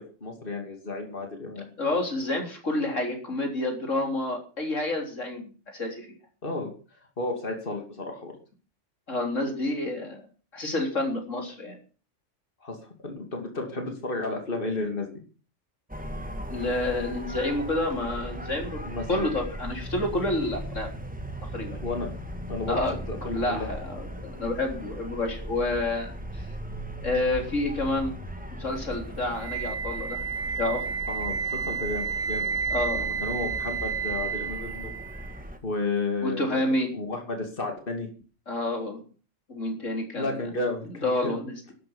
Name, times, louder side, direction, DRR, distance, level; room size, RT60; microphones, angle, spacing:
voice 1, 0.0-1.7 6.4-6.7 7.2-8.3 12.6-15.1 18.8-19.3 21.8-22.1 22.5-22.8 23.1-23.7 31.1-32.5 32.9-34.9 35.6-36.6 36.9-38.1 40.2-41.4, left 3 dB, 45° left, 3 dB, 3.1 m, -32 dB
voice 2, 1.8-6.1 9.1-10.2 10.5-11.8 16.5-18.8 19.1-20.9 21.4-21.8 22.7-22.9 23.2-26.5 27.0-28.2 28.6-30.2 30.6-30.8 32.7-33.2 36.2-36.9 38.5-39.0 39.5-40.5 41.0-41.5, left 2 dB, 85° left, 3 dB, 4.0 m, -29 dB
sound 1, 15.9-35.6, equal, 5° right, 1.7 m, -38 dB
Wind instrument woodwind instrument, 29.4-35.4, right 6 dB, 50° right, 1.3 m, -31 dB
12.5 x 11.0 x 7.2 m, 0.37 s
omnidirectional pair, 1.3 m